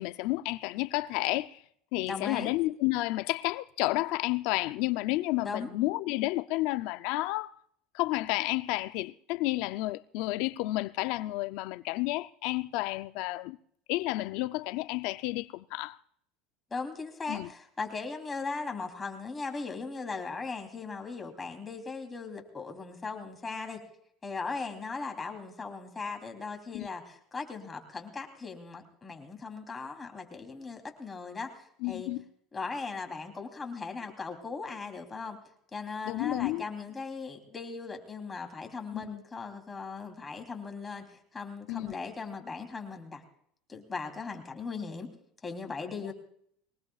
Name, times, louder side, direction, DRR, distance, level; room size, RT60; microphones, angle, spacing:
voice 1, 0.0-1.6 1.9-7.5 7.9-13.6 13.9-16.0 17.3-17.5 26.7-26.9 31.8-32.2 36.1-36.6 38.9-39.1 41.7-41.9, left 19 dB, 70° left, 0.5 m, -31 dB
voice 2, 2.1-2.5 5.4-5.8 16.7-23.8 24.2-32.1 32.5-35.4 35.7-43.2 43.7-45.1 45.4-46.1, left 4 dB, 20° left, 3.4 m, -38 dB
23.0 x 19.0 x 2.4 m
supercardioid pair, 120°, 0 cm